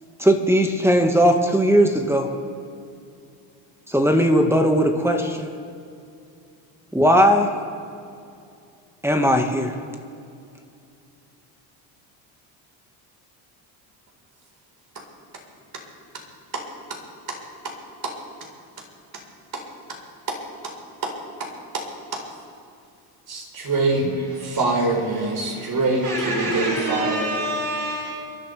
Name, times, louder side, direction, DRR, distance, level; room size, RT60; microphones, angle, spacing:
voice 1, 0.2-2.3 3.9-5.5 6.9-7.5 9.0-9.7, equal, 5° right, 4 dB, 1.6 m, -18 dB
voice 2, 16.5-17.0 17.3-17.4 17.6-17.7 18.0-18.2 19.5-19.6 20.3-20.7 21.0-22.2 23.3-24.1 24.4-27.3, right 2 dB, 50° right, 0 dB, 4.5 m, -25 dB
voice 3, 25.2-28.1, right 1 dB, 85° right, -7 dB, 4.5 m, -28 dB
29.0 x 12.0 x 3.4 m, 2.5 s
supercardioid pair, 85°, 48 cm